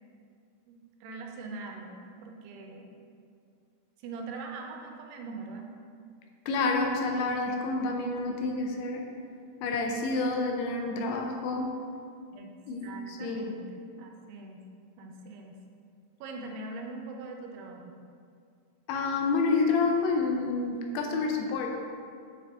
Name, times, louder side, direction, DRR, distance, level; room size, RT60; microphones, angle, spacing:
voice 1, 0.7-2.9 4.0-5.6 12.3-12.5 12.8-14.6 15.0-15.6 16.2-18.0, right 3 dB, 85° right, 2 dB, 2.7 m, -42 dB
voice 2, 6.5-9.0 9.6-11.8 12.7-13.5 18.9-21.8, left 3 dB, 80° left, 2 dB, 2.5 m, -28 dB
9.1 x 3.8 x 3.4 m, 2.3 s
omnidirectional pair, 4.8 m